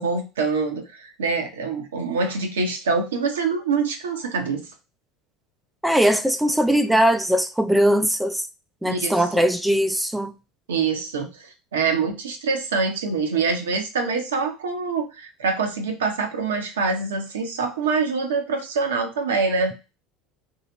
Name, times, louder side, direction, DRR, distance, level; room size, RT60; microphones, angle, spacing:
voice 1, 0.0-4.6 8.8-9.4 10.7-19.7, right 4 dB, 80° right, 0.7 m, -25 dB
voice 2, 5.8-8.4 8.8-10.3, equal, 5° right, 0.4 m, -20 dB
3.2 x 2.8 x 2.8 m
hypercardioid pair, 75°, 0 cm